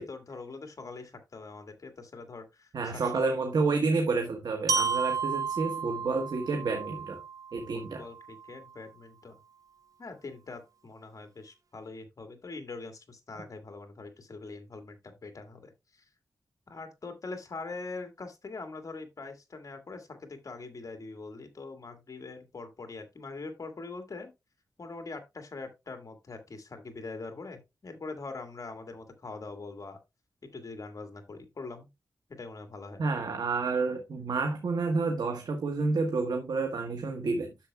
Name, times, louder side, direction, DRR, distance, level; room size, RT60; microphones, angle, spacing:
voice 1, 0.0-3.4 7.7-9.4 10.0-16.0 16.7-24.3 24.8-30.0 30.5-31.9 32.4-33.0, left 3 dB, 50° left, 1.9 m, -43 dB
voice 2, 2.7-7.2 7.5-8.0 33.0-37.5, right 3 dB, 75° right, 1.4 m, -29 dB
Glockenspiel, 4.7-8.7, right 5 dB, 55° right, 0.5 m, -33 dB
10.0 x 7.0 x 2.3 m
wide cardioid pair, 75°, 7 cm